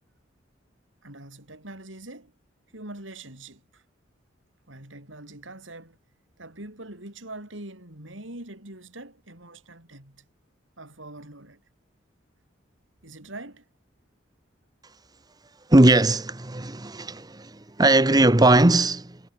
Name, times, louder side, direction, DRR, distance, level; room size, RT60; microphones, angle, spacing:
voice 1, 1.0-2.3 2.7-3.8 4.7-6.0 6.4-10.3 10.8-11.6 13.0-13.6, right 2 dB, 90° right, 7.5 m, -43 dB
voice 2, 15.7-19.2, right 2 dB, 20° right, 1.1 m, -19 dB
head